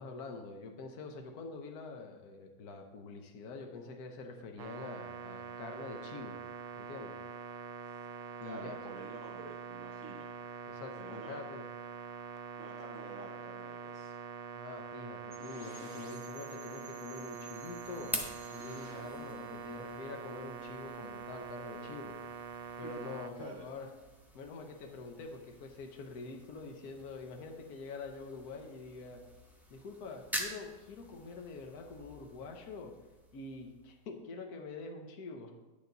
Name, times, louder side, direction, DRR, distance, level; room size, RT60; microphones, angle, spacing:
voice 1, 0.0-6.4 6.8-7.2 8.4-8.8 10.7-11.6 14.5-18.1 18.5-22.1 22.8-23.9 24.3-29.2 29.7-32.9 33.3-35.5, left 4 dB, 60° left, 3 dB, 1.4 m, -45 dB
sound 1, 4.6-23.3, right 6 dB, 85° right, 1.3 m, -45 dB
voice 2, 8.4-10.3 11.0-11.4 12.6-14.1 22.8-22.9 23.4-23.7, right 3 dB, 50° right, -2 dB, 1.1 m, -49 dB
sound 2, 15.3-21.1, equal, 25° left, 2.6 m, -53 dB
sound 3, 17.3-34.2, right 1 dB, ahead, 0.5 m, -47 dB
10.0 x 6.8 x 4.0 m, 1.1 s
omnidirectional pair, 2.0 m